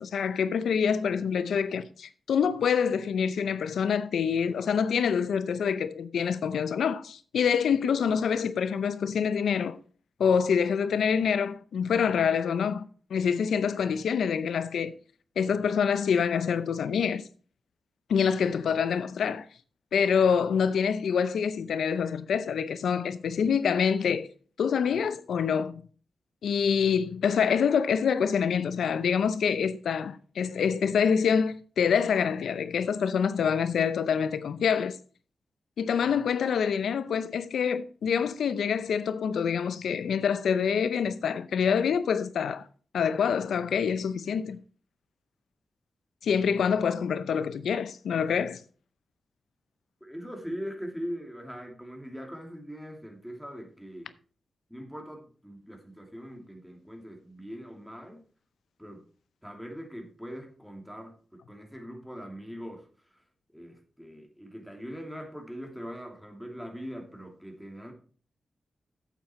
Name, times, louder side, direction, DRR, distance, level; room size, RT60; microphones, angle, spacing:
voice 1, 0.0-9.8 10.2-12.8 13.1-14.9 15.4-17.2 18.1-19.5 19.9-24.3 24.6-25.8 26.4-35.0 35.8-42.6 42.9-44.6 46.2-48.6, left 7 dB, 90° left, 0.6 m, -26 dB
voice 2, 50.0-54.1 54.7-58.2 58.8-59.0 59.4-62.9 63.5-67.9, equal, ahead, 2.7 m, -41 dB
8.5 x 7.6 x 4.3 m
cardioid pair, 65°, 0 cm